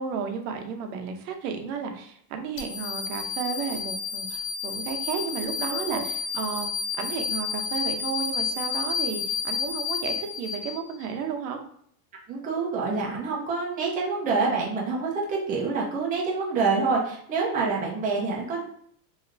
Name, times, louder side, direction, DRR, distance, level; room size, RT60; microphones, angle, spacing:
voice 1, 0.0-6.7 7.0-11.6, right 6 dB, 75° right, 5 dB, 0.7 m, -33 dB
sound 1, 2.6-11.0, left 6 dB, 70° left, 0.7 m, -31 dB
voice 2, 12.3-18.6, right 4 dB, 20° right, -3 dB, 0.5 m, -27 dB
3.2 x 2.8 x 2.5 m, 0.64 s
supercardioid pair, 150°, 49 cm